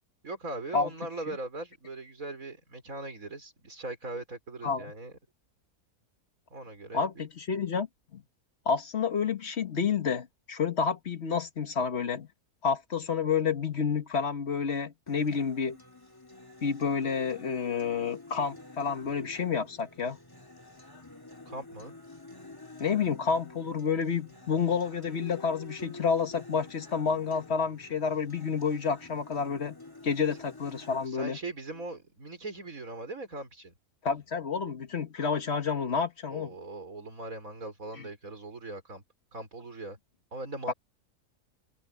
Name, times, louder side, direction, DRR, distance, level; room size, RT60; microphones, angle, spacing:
voice 1, 0.2-5.1 6.5-7.3 21.5-21.9 31.1-33.7 36.3-39.0 39.3-40.0 40.3-40.7, right 2 dB, 60° right, 5.5 m, -40 dB
voice 2, 6.9-7.9 8.1-8.2 8.6-12.3 12.6-15.8 16.6-20.2 22.8-29.8 30.0-31.4 34.0-36.5 38.0-38.1, left 6 dB, 45° left, 1.5 m, -29 dB
Acoustic guitar, 15.1-31.1, left 2 dB, 15° left, 2.4 m, -48 dB
omnidirectional pair, 1.7 m